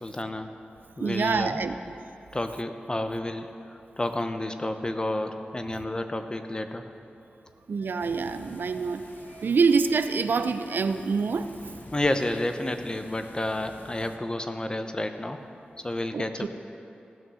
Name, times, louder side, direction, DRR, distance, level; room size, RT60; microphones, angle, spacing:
voice 1, 0.0-0.5 1.0-1.6 2.3-6.9 11.9-15.4 15.8-16.5, left 1 dB, 25° left, 7 dB, 0.7 m, -30 dB
voice 2, 1.0-1.8 7.7-11.5 16.1-16.5, right 5 dB, 75° right, 10 dB, 0.5 m, -26 dB
sound 1, 8.0-14.2, left 2 dB, 65° left, 1.1 m, -49 dB
15.5 x 6.2 x 6.3 m, 2.7 s
wide cardioid pair, 70°, 3 cm